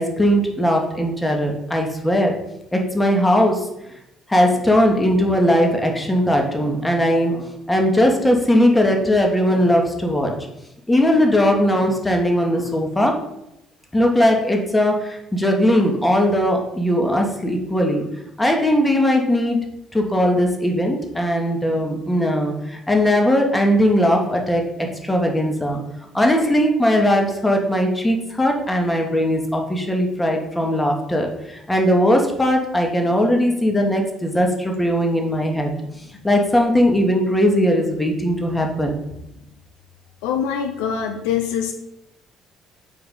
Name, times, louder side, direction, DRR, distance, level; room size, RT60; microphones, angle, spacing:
voice 1, 0.0-2.3 2.7-3.7 4.3-10.4 10.9-13.2 13.9-18.0 18.4-25.8 26.1-35.7 36.2-39.0, equal, 15° left, 2 dB, 1.2 m, -19 dB
voice 2, 40.2-41.7, left 8 dB, 70° left, 5 dB, 0.4 m, -23 dB
4.6 x 3.7 x 5.5 m, 0.86 s
figure-of-eight pair, 50°, 0 cm